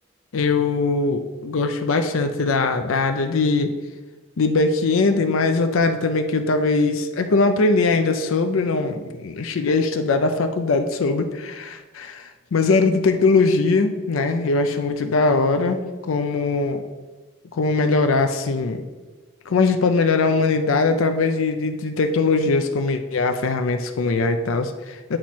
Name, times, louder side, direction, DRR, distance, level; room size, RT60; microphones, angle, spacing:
voice 1, 0.3-3.7 4.4-16.8 17.5-18.8 19.5-25.2, left 3 dB, 80° left, 7 dB, 0.5 m, -21 dB
8.7 x 3.0 x 4.3 m, 1.3 s
head